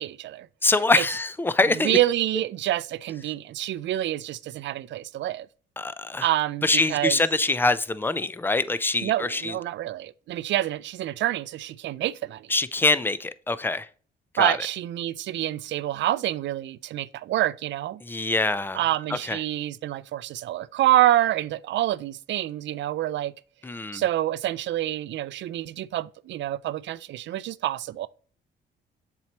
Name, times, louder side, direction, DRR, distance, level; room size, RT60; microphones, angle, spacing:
voice 1, 0.0-0.5 1.0-1.1 1.8-5.5 6.2-7.2 9.0-12.5 14.4-18.0 18.7-23.3 23.9-28.1, right 13 dB, 65° right, 0.4 m, -27 dB
voice 2, 0.6-2.0 5.8-6.3 6.6-9.6 12.5-13.9 14.3-14.6 18.0-18.8 19.1-19.4 23.6-24.0, left 2 dB, 10° left, 0.4 m, -24 dB
7.2 x 4.5 x 2.9 m
cardioid pair, 90°, 20 cm